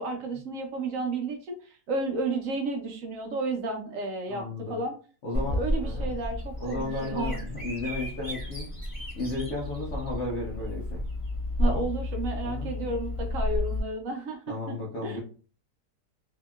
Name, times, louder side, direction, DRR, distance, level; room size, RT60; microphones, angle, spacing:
voice 1, 0.0-4.9 5.5-7.4 11.6-14.8 15.0-15.2, right 2 dB, 65° right, 4 dB, 0.9 m, -32 dB
voice 2, 4.3-4.8 5.2-6.1 6.6-8.7 9.2-11.0 11.6-11.8 12.4-12.7 14.5-15.2, left 2 dB, 60° left, -3 dB, 0.9 m, -34 dB
Bird vocalization bird call bird song, 5.3-13.8, left 1 dB, 15° right, 1.0 m, -32 dB
2.8 x 2.7 x 2.2 m, 0.39 s
omnidirectional pair, 1.7 m